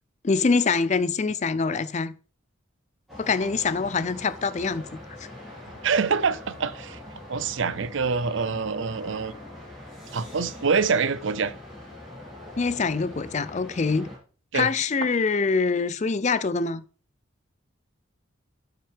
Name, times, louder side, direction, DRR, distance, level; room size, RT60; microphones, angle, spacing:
voice 1, 0.2-2.1 3.2-4.9 5.2-5.3 12.6-14.1 14.5-16.8, left 4 dB, 35° left, 0.4 m, -24 dB
sound 1, 3.1-14.2, left 1 dB, ahead, 4.0 m, -43 dB
voice 2, 5.8-7.0 7.3-9.3 10.1-11.5 14.5-14.7, right 5 dB, 60° right, 0.5 m, -25 dB
12.0 x 5.8 x 3.5 m
head